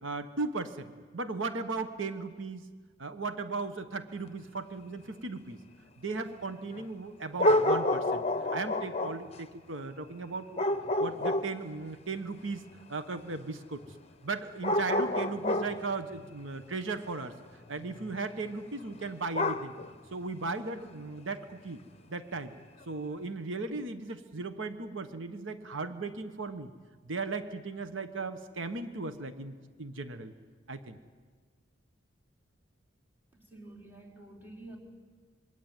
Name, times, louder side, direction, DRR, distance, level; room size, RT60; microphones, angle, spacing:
voice 1, 0.0-2.7 3.0-5.6 6.0-10.6 11.0-12.6 12.9-13.8 14.2-19.7 20.1-21.8 22.1-22.5 22.9-26.7 27.0-30.3 30.7-31.0, right 3 dB, 90° right, 9 dB, 1.4 m, -37 dB
sound 1, 4.3-4.4 6.7-6.8 7.4-9.4 10.6-11.7 13.8-13.9 14.6-15.9 17.9-18.4 19.3-19.9 20.8-20.9, left 1 dB, 30° left, 1.0 m, -28 dB
voice 2, 33.3-34.8, right 2 dB, 10° right, -2 dB, 4.4 m, -49 dB
26.0 x 22.5 x 9.1 m, 1.5 s
head